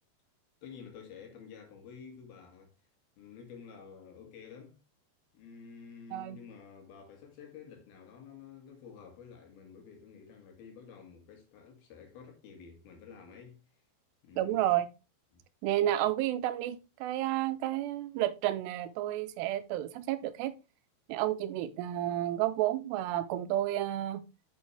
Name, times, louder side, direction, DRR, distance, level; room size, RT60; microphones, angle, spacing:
voice 1, 0.6-2.7 3.2-4.8 5.3-13.6 14.2-14.7 15.3-15.4, left 6 dB, 70° left, 3.5 m, -50 dB
voice 2, 14.4-14.9 15.6-20.5 21.1-24.2, right 13 dB, 90° right, 2.9 m, -31 dB
8.3 x 6.2 x 3.2 m
omnidirectional pair, 4.7 m